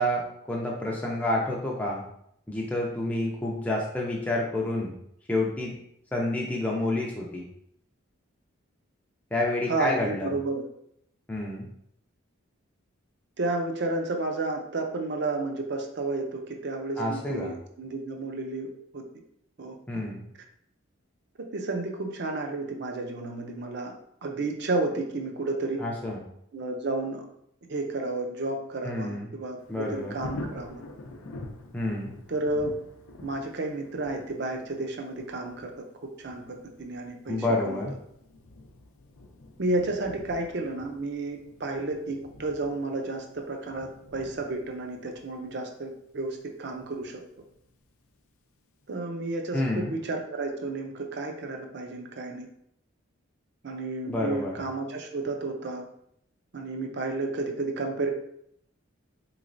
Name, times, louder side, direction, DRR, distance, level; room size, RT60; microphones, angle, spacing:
voice 1, 0.0-2.0 2.5-5.0 5.3-5.7 6.1-7.4 9.3-10.3 11.3-11.7 17.0-17.5 19.9-20.2 25.8-26.2 28.8-29.3 29.7-30.1 31.7-32.1 37.3-37.9 49.5-49.9 54.1-54.6, left 1 dB, 5° left, -3 dB, 0.4 m, -29 dB
voice 2, 9.7-10.6 13.4-18.7 18.9-19.0 19.6-19.8 21.5-23.9 24.2-25.8 26.5-27.3 27.7-30.8 32.3-32.7 33.2-35.7 36.2-37.4 37.6-37.8 39.6-47.2 48.9-52.5 53.6-55.8 56.5-58.1, right 2 dB, 50° right, 3 dB, 0.5 m, -31 dB
Thunder, 29.6-48.3 48.8-48.9, left 2 dB, 85° left, 0.5 m, -47 dB
3.9 x 3.1 x 2.5 m, 0.73 s
head